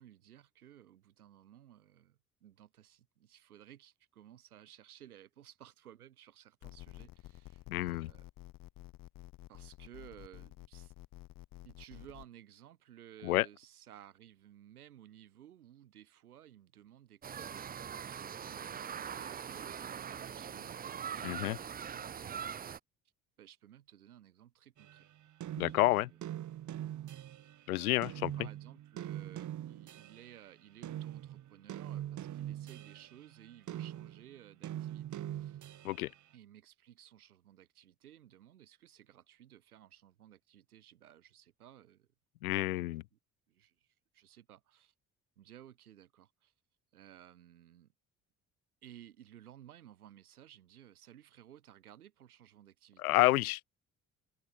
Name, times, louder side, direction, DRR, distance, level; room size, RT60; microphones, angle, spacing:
voice 1, 0.0-8.3 9.5-10.9 11.6-22.7 23.4-25.1 25.7-26.2 27.7-28.1 28.4-35.6 36.3-42.1 43.1-43.2 43.5-44.9 45.4-46.5 46.9-47.9 48.8-53.2, right 11 dB, 80° right, 3.7 m, -57 dB
sound 1, 6.6-12.3, left 16 dB, 50° left, 1.0 m, -51 dB
voice 2, 7.7-8.1 13.2-13.5 21.2-21.6 25.6-26.1 27.7-28.3 35.8-36.1 42.4-43.0 53.0-53.7, left 18 dB, 75° left, 0.8 m, -29 dB
sound 2, 17.2-22.8, right 8 dB, 20° right, 0.5 m, -42 dB
sound 3, 24.8-27.6 28.0-30.4 30.8-36.1, right 12 dB, 40° right, 1.1 m, -43 dB
figure-of-eight pair, 50°, 44 cm